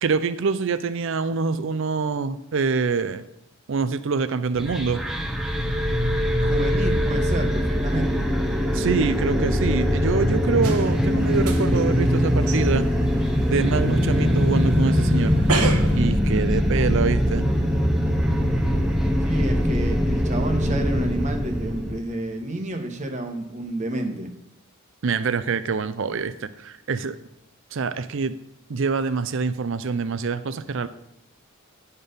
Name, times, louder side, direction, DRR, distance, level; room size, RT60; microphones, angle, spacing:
voice 1, 0.0-3.2 3.7-5.0 8.7-12.8 13.5-15.3 15.9-17.5 25.0-27.2 27.7-28.3 28.7-30.9, right 4 dB, 60° right, 12 dB, 0.5 m, -25 dB
sound 1, 4.5-22.0, equal, ahead, 0.6 m, -22 dB
voice 2, 6.4-8.3 19.2-24.3, right 1 dB, 30° right, 4 dB, 1.1 m, -30 dB
sound 2, 10.6-16.0, right 4 dB, 80° right, 1.1 m, -33 dB
11.0 x 4.4 x 5.1 m, 0.78 s
head